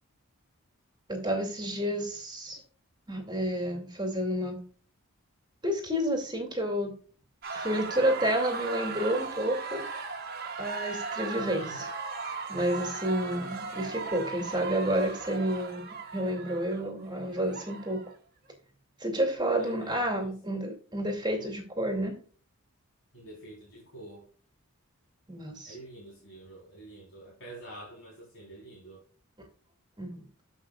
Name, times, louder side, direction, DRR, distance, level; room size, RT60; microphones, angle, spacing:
voice 1, 1.1-2.6 3.1-4.6 5.6-6.9 7.5-9.9 10.6-11.9 12.5-15.8 16.1-18.0 19.0-22.1 25.3-25.7 30.0-30.2, right 1 dB, 20° right, 2 dB, 2.4 m, -30 dB
sound 1, 7.4-18.1, right 4 dB, 45° right, 1.7 m, -38 dB
voice 2, 11.4-11.9 19.6-20.1 21.2-21.5 23.1-24.3 25.6-29.0, right 1 dB, 55° left, -5 dB, 4.0 m, -47 dB
14.5 x 5.7 x 2.4 m, 0.42 s
head